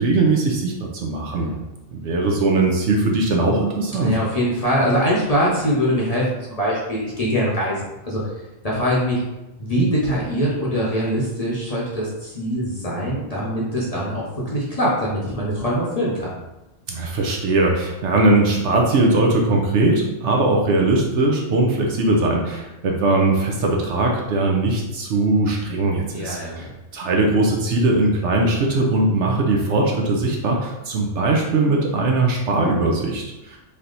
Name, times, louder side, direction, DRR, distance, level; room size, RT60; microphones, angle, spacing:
voice 1, 0.0-1.5 1.9-4.2 16.9-33.6, right 2 dB, 65° right, 0 dB, 0.9 m, -20 dB
voice 2, 3.9-8.2 8.6-9.2 9.6-14.2 14.5-16.3 26.1-26.7 32.9-33.0, equal, 35° left, -6 dB, 0.8 m, -23 dB
3.3 x 2.8 x 3.8 m, 0.99 s
omnidirectional pair, 1.3 m